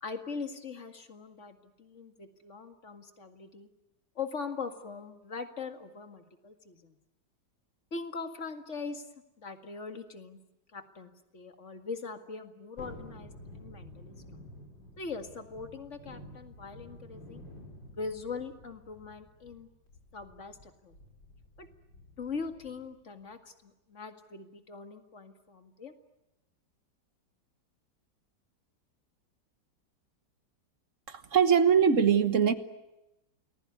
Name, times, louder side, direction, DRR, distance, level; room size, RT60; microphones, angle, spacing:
voice 1, 0.0-3.7 4.2-7.0 7.9-9.1 9.4-10.4 10.7-14.1 15.0-17.4 17.9-19.7 20.1-21.0 21.6-21.7 22.2-25.9, left 4 dB, 40° left, 7 dB, 2.3 m, -41 dB
Thunderstorm, 12.8-23.0 23.3-23.4, left 1 dB, 90° left, 6.3 m, -51 dB
voice 2, 31.1-32.5, right 7 dB, 45° right, 11 dB, 1.5 m, -22 dB
29.5 x 20.5 x 9.6 m, 0.94 s
omnidirectional pair, 1.9 m